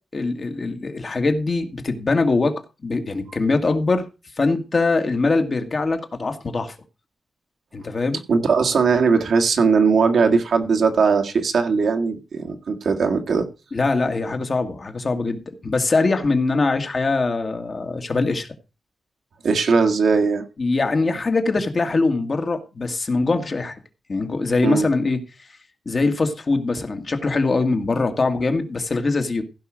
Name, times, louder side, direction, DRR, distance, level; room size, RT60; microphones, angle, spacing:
voice 1, 0.1-2.5 2.8-4.1 4.4-6.8 7.7-8.2 13.7-18.5 20.6-23.8 24.1-25.2 25.9-29.4, left 3 dB, 35° left, 1.9 m, -22 dB
voice 2, 8.3-13.5 19.4-20.4 24.6-24.9, right 5 dB, 75° right, 1.9 m, -19 dB
15.5 x 5.7 x 6.3 m
wide cardioid pair, 160°, 0 cm